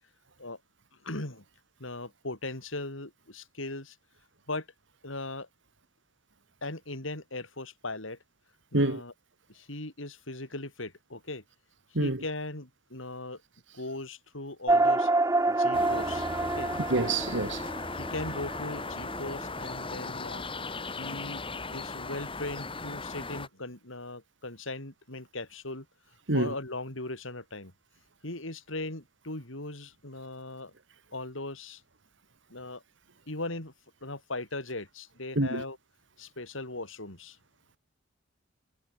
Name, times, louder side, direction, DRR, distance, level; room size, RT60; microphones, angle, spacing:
voice 1, 0.9-1.4 1.8-4.0 4.5-4.7 5.0-5.5 6.6-8.2 8.7-9.1 9.5-11.4 11.9-13.4 13.7-15.1 15.5-16.7 17.9-20.5 21.0-21.4 21.7-25.9 26.3-27.7 28.2-30.7 31.1-31.8 32.5-32.8 33.3-33.7 34.0-35.8 36.2-37.4, left 2 dB, 75° left, 5.3 m, -38 dB
sound 1, 14.7-19.4, right 2 dB, 15° right, 1.3 m, -27 dB
sound 2, 15.7-23.5, left 3 dB, 25° left, 6.0 m, -37 dB
voice 2, 16.9-17.6 26.3-26.5 35.4-35.6, right 2 dB, 65° right, 2.3 m, -26 dB
head